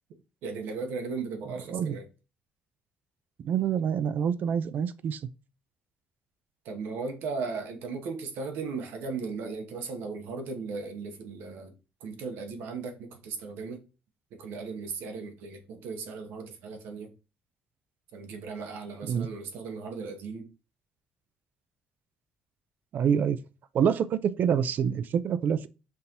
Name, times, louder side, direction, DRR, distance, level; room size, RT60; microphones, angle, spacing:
voice 1, 0.4-2.1 6.6-11.7 12.0-13.8 14.3-17.1 18.1-20.5, right 4 dB, 85° right, 0.9 m, -37 dB
voice 2, 3.4-5.2 19.1-19.3 22.9-23.4 23.7-25.7, right 8 dB, 55° right, 0.4 m, -26 dB
5.4 x 2.6 x 2.9 m
cardioid pair, 105°, 4 cm